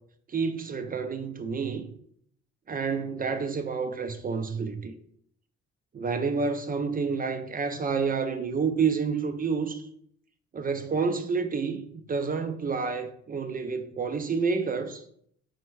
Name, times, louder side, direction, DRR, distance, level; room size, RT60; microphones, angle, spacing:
voice 1, 0.3-1.9 2.7-4.9 5.9-9.8 10.5-15.0, right 5 dB, 30° right, 0.4 m, -29 dB
4.3 x 2.1 x 4.5 m
cardioid pair, 90°, 30 cm